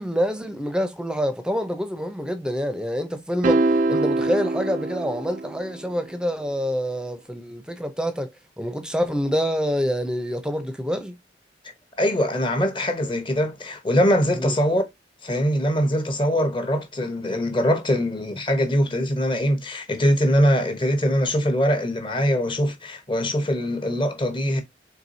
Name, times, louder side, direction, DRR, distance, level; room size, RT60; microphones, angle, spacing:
voice 1, 0.0-8.3 8.6-11.1 14.3-14.5, equal, 5° right, 0.7 m, -26 dB
sound 1, 3.4-5.9, right 2 dB, 45° right, 0.3 m, -23 dB
voice 2, 12.0-14.8 15.2-24.6, equal, 25° left, 1.1 m, -22 dB
4.6 x 3.6 x 2.7 m
head